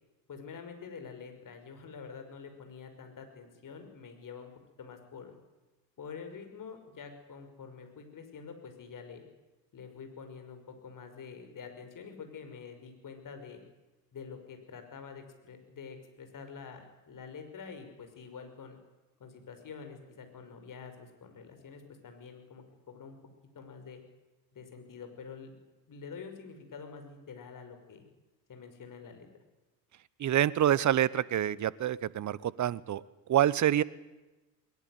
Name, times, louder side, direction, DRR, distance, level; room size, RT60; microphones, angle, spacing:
voice 1, 0.3-4.5 4.8-5.3 6.0-9.2 9.7-13.6 14.1-18.8 19.2-23.2 23.5-24.0 24.5-25.6 25.9-28.0 28.5-29.3, left 6 dB, 40° left, 6 dB, 5.8 m, -47 dB
voice 2, 30.2-33.0 33.3-33.8, right 11 dB, 40° right, 21 dB, 1.0 m, -27 dB
21.0 x 20.0 x 9.4 m, 1.1 s
hypercardioid pair, 60°, 46 cm